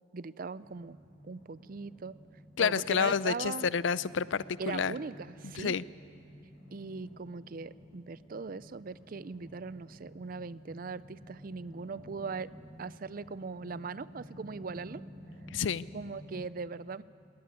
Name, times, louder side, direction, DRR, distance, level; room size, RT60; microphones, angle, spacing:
voice 1, 0.1-1.0 1.2-2.2 2.6-3.7 4.6-5.8 6.7-12.5 12.8-15.0 15.9-17.0, right 4 dB, 45° right, 17 dB, 0.5 m, -40 dB
sound 1, 0.6-16.4, equal, 60° left, 5.7 m, -52 dB
voice 2, 2.6-4.9 5.5-5.8 15.5-15.9, left 6 dB, 75° left, 18 dB, 0.5 m, -29 dB
20.0 x 18.5 x 9.7 m, 2.7 s
head